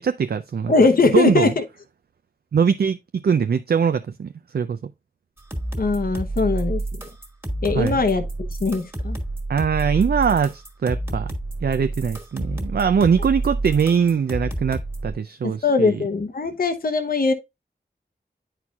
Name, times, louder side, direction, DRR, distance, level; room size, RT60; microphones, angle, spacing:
voice 1, 0.0-0.7 1.1-1.5 2.5-4.9 7.7-8.0 9.5-11.3 11.6-16.0, right 6 dB, 65° right, 0.4 m, -22 dB
voice 2, 0.7-1.6 5.8-6.8 7.6-8.2 8.6-9.2 15.4-17.3, left 4 dB, 55° left, 0.7 m, -20 dB
sound 1, 5.4-15.1, right 2 dB, 15° right, 1.7 m, -29 dB
9.7 x 4.5 x 2.3 m
wide cardioid pair, 70°, 18 cm